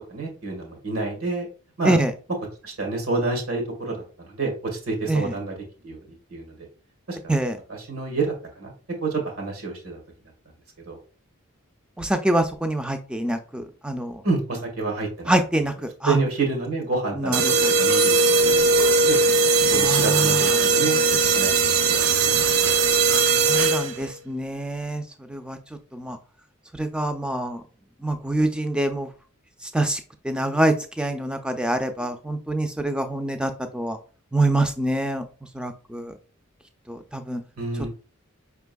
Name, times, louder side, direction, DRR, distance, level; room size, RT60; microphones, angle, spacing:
voice 1, 0.1-1.5 1.8-2.0 2.6-5.5 5.8-6.7 7.1-7.3 7.7-8.7 9.0-10.0 10.8-11.0 14.2-15.3 16.0-18.6 18.9-19.2 19.7-21.6 21.9-22.3 22.6-22.7 37.6-37.9, right 3 dB, 90° right, 0 dB, 1.7 m, -28 dB
voice 2, 12.0-14.2 15.3-16.2 17.2-17.7 19.7-20.5 23.1-25.6 25.9-26.2 26.7-27.6 28.0-29.1 29.6-34.0 34.3-35.3 35.5-36.1 36.9-37.4, right 1 dB, 5° right, 7 dB, 0.3 m, -25 dB
sound 1, 17.3-24.1, right 4 dB, 70° right, 0.6 m, -19 dB
5.3 x 3.4 x 2.2 m, 0.38 s
head